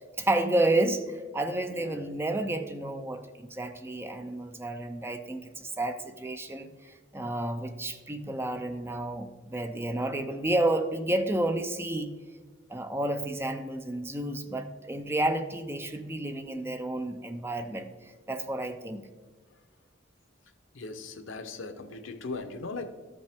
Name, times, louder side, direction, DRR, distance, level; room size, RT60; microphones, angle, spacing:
voice 1, 0.2-12.1 12.7-19.0, right 1 dB, 10° right, 7 dB, 0.5 m, -31 dB
voice 2, 1.7-2.1 20.7-22.9, left 3 dB, 80° left, 8 dB, 0.7 m, -39 dB
12.5 x 5.3 x 3.5 m, 1.4 s
head